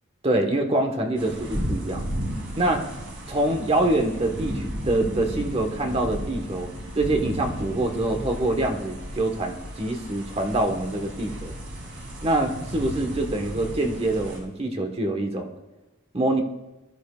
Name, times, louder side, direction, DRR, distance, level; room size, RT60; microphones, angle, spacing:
voice 1, 0.2-2.2 2.6-2.9 3.3-11.5 12.2-15.5 16.1-16.4, right 1 dB, 30° right, 4 dB, 1.3 m, -25 dB
sound 1, 1.2-14.4, equal, 60° right, 3.8 m, -34 dB
20.5 x 13.0 x 2.4 m, 1.0 s
head